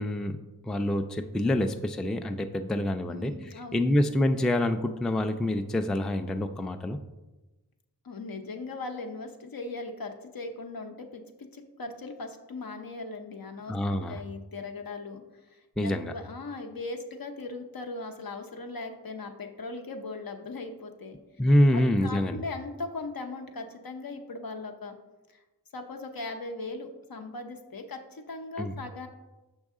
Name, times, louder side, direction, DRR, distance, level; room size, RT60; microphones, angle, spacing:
voice 1, 0.0-3.3 3.7-7.0 13.7-14.2 15.8-16.1 21.4-22.4 28.6-28.7, left 1 dB, ahead, 8 dB, 0.3 m, -26 dB
voice 2, 3.0-4.0 8.0-21.2 21.7-25.0 25.3-25.4 25.7-29.1, left 3 dB, 65° left, 4 dB, 0.8 m, -39 dB
6.3 x 5.4 x 3.6 m, 1.1 s
wide cardioid pair, 55°, 38 cm